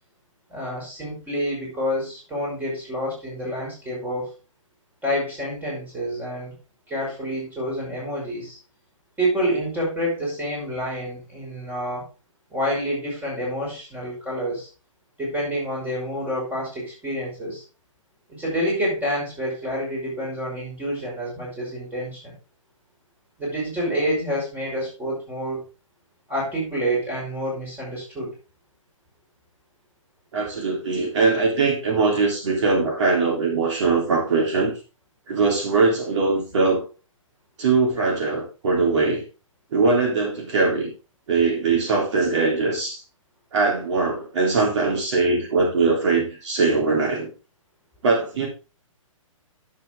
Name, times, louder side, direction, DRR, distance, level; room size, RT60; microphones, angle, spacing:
voice 1, 0.5-4.3 5.0-6.5 6.9-8.6 9.2-12.1 12.5-14.7 15.2-17.6 18.3-22.3 23.4-25.6 26.3-28.3, equal, 10° right, -4 dB, 5.5 m, -28 dB
voice 2, 30.3-34.7 35.3-36.8 37.6-39.2 39.7-40.9 41.3-43.0 43.5-47.3 48.0-48.5, right 4 dB, 60° right, 0 dB, 3.5 m, -21 dB
9.6 x 7.4 x 3.7 m, 0.32 s
hypercardioid pair, 140°, 17 cm